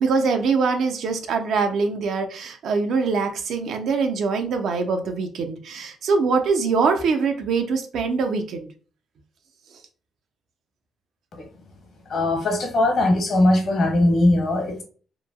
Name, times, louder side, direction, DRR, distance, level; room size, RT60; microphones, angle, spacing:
voice 1, 0.0-8.7, right 4 dB, 70° right, 0.5 m, -23 dB
voice 2, 12.1-14.8, left 1 dB, 60° left, 1.0 m, -20 dB
2.9 x 2.2 x 2.3 m
cardioid pair, 90°, 0 cm